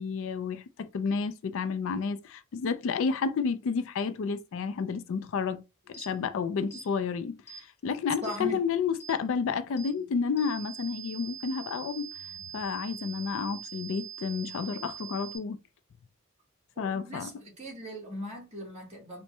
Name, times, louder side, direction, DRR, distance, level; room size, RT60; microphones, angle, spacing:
voice 1, 0.0-12.1 12.5-15.6 16.8-17.3, left 5 dB, 65° left, 0.3 m, -31 dB
sound 1, 5.9-6.1 6.7-6.9 7.5-7.6 8.2-8.4 9.0-9.2 9.8-9.9 10.4-15.4, right 8 dB, 10° left, 0.9 m, -43 dB
voice 2, 8.2-8.6 16.8-19.2, equal, 30° right, 1.5 m, -39 dB
4.3 x 2.1 x 3.2 m
head